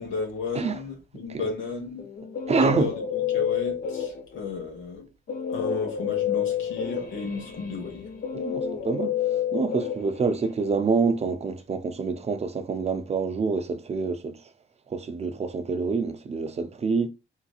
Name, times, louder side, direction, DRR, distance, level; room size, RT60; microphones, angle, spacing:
voice 1, 0.0-2.1 2.6-2.9 3.3-5.1 5.5-8.1, left 4 dB, 80° left, 1.1 m, -33 dB
Guitar, 2.0-4.5 5.3-10.7, left 8 dB, 45° left, 0.5 m, -29 dB
voice 2, 2.5-2.9 8.3-14.5 14.9-17.1, right 4 dB, 35° right, 0.4 m, -27 dB
3.3 x 2.8 x 2.3 m
cardioid pair, 90°, 20 cm